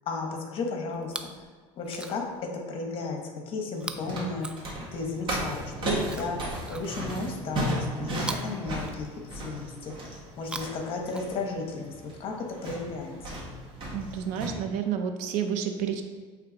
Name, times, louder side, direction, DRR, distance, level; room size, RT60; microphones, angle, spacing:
voice 1, 0.1-1.5 1.8-2.2 2.7-3.2 3.5-4.5 4.9-6.4 6.7-9.1 9.3-12.3 12.6-13.1, left 3 dB, 45° left, 2 dB, 1.2 m, -34 dB
Chewing mastication, 0.9-1.4 1.8-2.4 3.8-5.1 6.0-7.3 8.2-9.4 10.3-11.7 12.6-12.7, right 2 dB, 5° right, 0.3 m, -42 dB
sound 1, 3.8-14.5, right 1 dB, 40° right, 1.7 m, -35 dB
voice 2, 13.9-16.0, right 8 dB, 65° right, 6 dB, 0.8 m, -30 dB
8.6 x 3.3 x 3.9 m, 1.6 s
cardioid pair, 135°, 13 cm